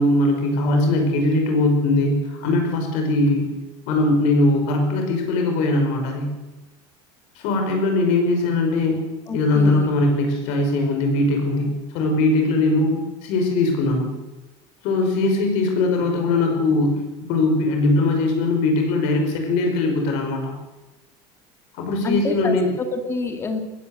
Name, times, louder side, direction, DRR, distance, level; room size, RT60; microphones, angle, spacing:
voice 1, 0.0-3.5 3.9-6.3 7.4-14.1 14.8-17.0 17.3-20.5 21.8-22.7, left 2 dB, 55° left, 3 dB, 5.6 m, -20 dB
voice 2, 9.3-10.0 22.0-23.6, left 4 dB, 15° left, 6 dB, 2.4 m, -28 dB
21.0 x 18.5 x 8.0 m, 1.1 s
cardioid pair, 175°, 14 cm